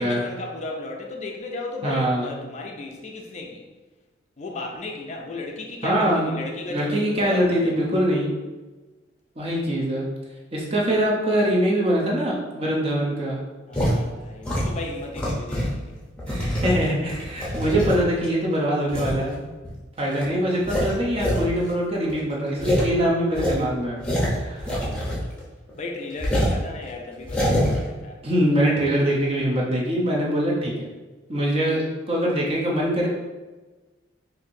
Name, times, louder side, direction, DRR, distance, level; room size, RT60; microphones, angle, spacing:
voice 1, 0.0-3.6 4.4-7.8 13.7-16.0 25.8-28.2, left 2 dB, 35° left, 1 dB, 0.4 m, -35 dB
voice 2, 1.8-2.3 5.8-6.3 6.7-8.3 9.4-10.0 10.5-13.4 16.3-19.4 20.0-24.0 24.3-24.6 28.2-30.7 31.3-33.1, equal, 30° right, -3 dB, 0.7 m, -23 dB
sound 1, 13.7-13.9 14.4-15.8 16.2-18.2 18.9-19.2 19.6-19.7 20.1-20.2 20.6-21.4 21.7-21.8 22.1-22.2 22.6-22.9 23.3-25.4 25.7-25.8 26.2-26.6 27.2-27.8, equal, 5° left, 0.7 m, -24 dB
4.5 x 2.6 x 2.6 m, 1.2 s
head